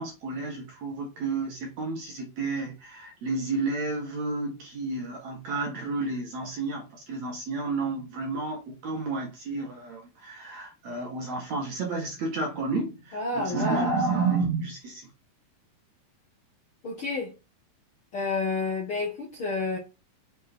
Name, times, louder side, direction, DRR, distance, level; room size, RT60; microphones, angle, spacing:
voice 1, 0.0-15.1, right 3 dB, 55° right, 2.2 m, -31 dB
voice 2, 13.1-13.9 16.8-17.3 18.1-19.8, left 3 dB, 55° left, 1.5 m, -30 dB
6.8 x 4.7 x 4.4 m
omnidirectional pair, 4.6 m